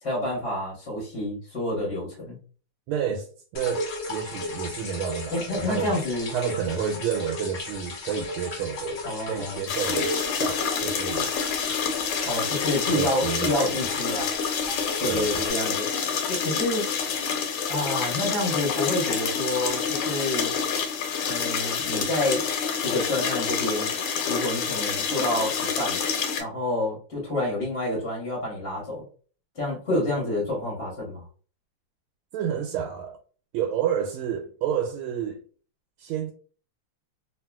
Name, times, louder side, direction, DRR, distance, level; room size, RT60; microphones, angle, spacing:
voice 1, 0.0-2.4 5.3-6.3 9.0-9.7 12.2-14.3 15.0-15.9 16.3-16.9 17.7-20.5 21.3-22.5 22.8-23.9 24.3-26.0 26.4-29.0 29.5-31.3, left 1 dB, 40° left, 1.2 m, -28 dB
voice 2, 2.9-3.3 3.5-5.9 6.3-11.3 12.9-13.8 15.1-15.4 32.3-33.2 33.5-35.4 36.0-36.3, right 8 dB, 80° right, 1.5 m, -30 dB
sound 1, 3.5-15.5, left 1 dB, 60° left, 0.8 m, -35 dB
sound 2, 9.7-26.4, left 6 dB, 80° left, 1.6 m, -28 dB
3.0 x 2.8 x 2.2 m
omnidirectional pair, 2.4 m